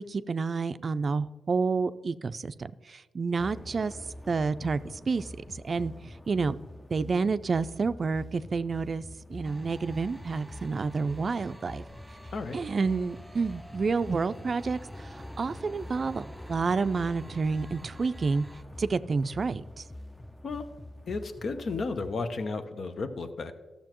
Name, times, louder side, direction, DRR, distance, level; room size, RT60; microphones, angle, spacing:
voice 1, 0.0-4.0 4.3-5.9 6.3-6.6 6.9-9.0 9.3-11.8 12.5-18.4 18.8-19.8, right 4 dB, 55° right, 13 dB, 0.3 m, -29 dB
sound 1, 3.4-22.2, left 1 dB, 15° left, 0.5 m, -45 dB
sound 2, 9.4-18.6, right 1 dB, 5° right, 1.3 m, -51 dB
voice 2, 21.1-23.5, left 3 dB, 65° left, 8 dB, 0.8 m, -33 dB
13.0 x 6.7 x 3.0 m, 1.3 s
supercardioid pair, 45°, 0 cm